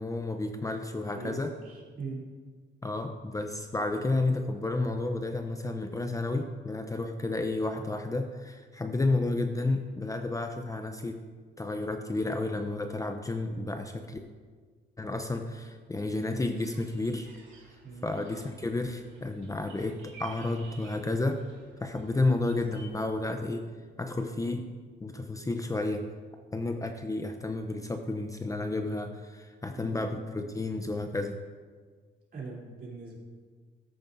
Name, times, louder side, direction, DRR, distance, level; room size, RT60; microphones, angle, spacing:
voice 1, 0.0-1.5 2.8-11.2 11.6-14.2 15.0-17.3 18.0-21.4 21.8-23.6 24.0-24.7 25.0-26.0 26.5-31.4, left 2 dB, 15° left, 5 dB, 0.6 m, -31 dB
voice 2, 1.1-2.2 17.8-18.0 29.8-30.0 32.3-33.2, right 4 dB, 50° right, -3 dB, 3.2 m, -41 dB
sound 1, 16.2-22.9, right 5 dB, 75° right, 2.4 m, -55 dB
14.0 x 8.7 x 2.6 m, 1.5 s
cardioid pair, 90°, 20 cm